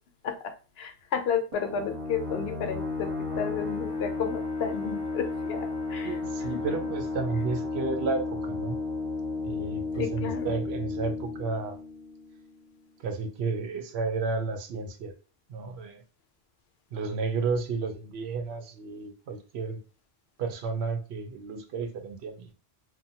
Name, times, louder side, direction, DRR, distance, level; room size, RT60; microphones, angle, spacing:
voice 1, 0.2-6.2 6.5-6.6 10.0-10.5, left 7 dB, 75° left, 6 dB, 0.8 m, -32 dB
sound 1, 1.5-12.8, left 3 dB, 35° right, 0.8 m, -33 dB
voice 2, 6.0-8.7 9.5-11.8 13.0-15.1 15.5-16.0 16.9-19.8 20.4-22.5, right 4 dB, 90° right, 7 dB, 0.8 m, -32 dB
2.6 x 2.1 x 2.7 m, 0.35 s
omnidirectional pair, 1.0 m